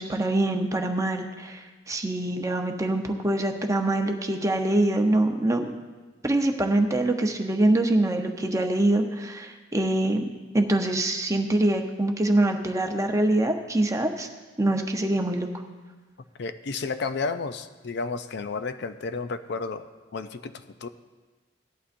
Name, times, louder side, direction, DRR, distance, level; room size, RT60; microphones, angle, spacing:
voice 1, 0.0-5.7 6.2-10.3 10.5-14.3 14.6-15.5, right 1 dB, 15° right, 4 dB, 0.8 m, -24 dB
voice 2, 16.4-20.9, left 4 dB, 60° left, 9 dB, 0.5 m, -32 dB
17.0 x 11.5 x 2.6 m, 1.3 s
head